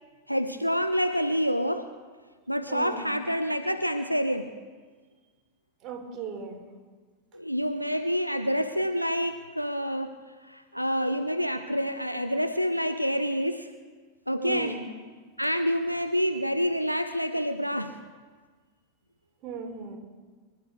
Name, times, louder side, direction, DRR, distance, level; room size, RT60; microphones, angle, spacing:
voice 1, 0.3-1.9 2.5-4.5 7.3-10.1 10.4-13.7 14.3-14.8 15.4-18.0, equal, 90° right, 9 dB, 0.7 m, -27 dB
voice 2, 2.7-3.1 5.8-6.6 14.4-14.8 19.4-20.0, right 5 dB, 35° right, 2 dB, 3.5 m, -37 dB
24.0 x 12.5 x 3.9 m, 1.4 s
figure-of-eight pair, 90°, 0 cm